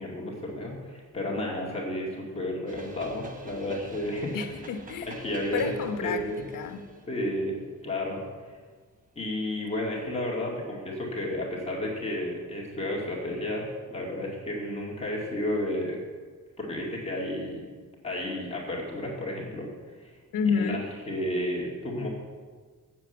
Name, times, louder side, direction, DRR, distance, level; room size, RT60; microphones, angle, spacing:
voice 1, 0.0-4.4 5.2-6.4 7.1-7.6 7.8-8.6 9.2-16.0 16.6-17.7 18.0-20.2 20.4-20.8 21.1-22.1, left 1 dB, 20° left, -4 dB, 2.1 m, -32 dB
sound 1, 2.7-9.0, right 2 dB, 25° right, 1.0 m, -48 dB
voice 2, 4.3-5.2 5.5-6.8 20.3-20.9, left 6 dB, 85° left, 7 dB, 1.0 m, -30 dB
7.7 x 7.3 x 7.7 m, 1.5 s
wide cardioid pair, 175°, 32 cm